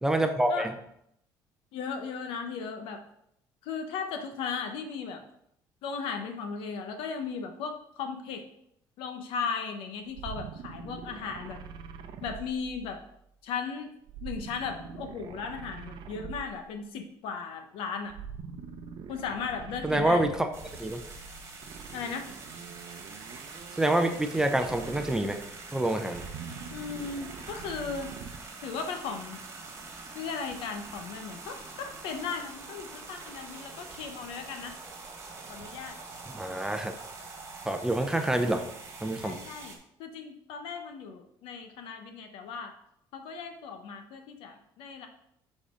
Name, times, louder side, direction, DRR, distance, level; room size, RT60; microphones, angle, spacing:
voice 1, 0.0-0.7 19.8-20.5 20.8-21.0 23.8-25.4 25.7-26.2 36.3-36.9 37.6-38.6 39.0-39.4, right 1 dB, 5° right, 6 dB, 0.6 m, -27 dB
voice 2, 1.7-3.0 3.6-5.2 5.8-8.4 9.0-11.6 12.2-13.0 13.4-13.9 14.2-18.1 19.1-20.4 21.9-22.3 26.7-28.2 28.6-29.4 30.1-34.8 35.5-36.0 39.2-42.7 43.1-45.1, left 5 dB, 75° left, 5 dB, 1.1 m, -36 dB
sound 1, 10.1-13.2 14.1-16.8 18.1-20.7 21.6-25.6 26.0-28.5, right 6 dB, 55° right, 0.7 m, -44 dB
sound 2, 20.5-39.8, right 3 dB, 30° right, 1.7 m, -45 dB
7.3 x 4.2 x 5.1 m, 0.74 s
cardioid pair, 140°, 9 cm